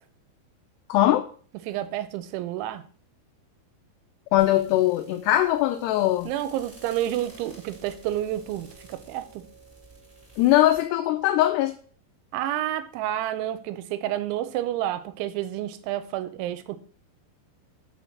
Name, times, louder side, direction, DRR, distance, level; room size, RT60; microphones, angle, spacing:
voice 1, 0.9-1.3 4.3-6.3 10.4-11.7, left 14 dB, 80° left, 7 dB, 2.4 m, -21 dB
voice 2, 1.7-2.8 6.3-9.4 12.3-16.8, right 12 dB, 90° right, 12 dB, 3.2 m, -30 dB
sound 1, 4.4-10.8, right 5 dB, ahead, 3.6 m, -48 dB
6.1 x 5.7 x 7.2 m, 0.43 s
omnidirectional pair, 5.2 m